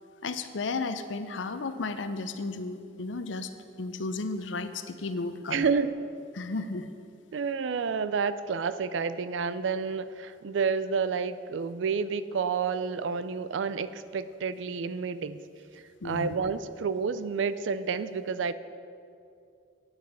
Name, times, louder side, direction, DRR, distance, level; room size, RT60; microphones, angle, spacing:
voice 1, 0.2-3.5 3.8-5.7 6.3-6.9 16.0-16.4, left 3 dB, 80° left, 10 dB, 0.7 m, -33 dB
voice 2, 5.5-5.9 7.3-15.4 15.7-18.5, right 5 dB, 80° right, 14 dB, 0.4 m, -30 dB
9.0 x 6.3 x 8.1 m, 2.5 s
head